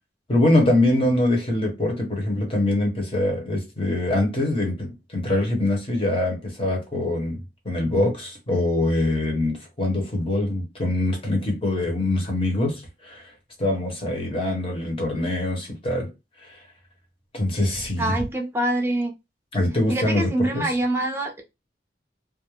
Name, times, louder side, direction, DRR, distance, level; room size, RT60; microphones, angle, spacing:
voice 1, 0.3-13.3 13.6-16.1 16.4-16.6 17.3-18.1 19.5-20.6, left 1 dB, 30° left, 0.9 m, -24 dB
voice 2, 18.0-19.1 19.9-21.4, right 1 dB, 15° right, 0.5 m, -25 dB
2.4 x 2.0 x 3.1 m
head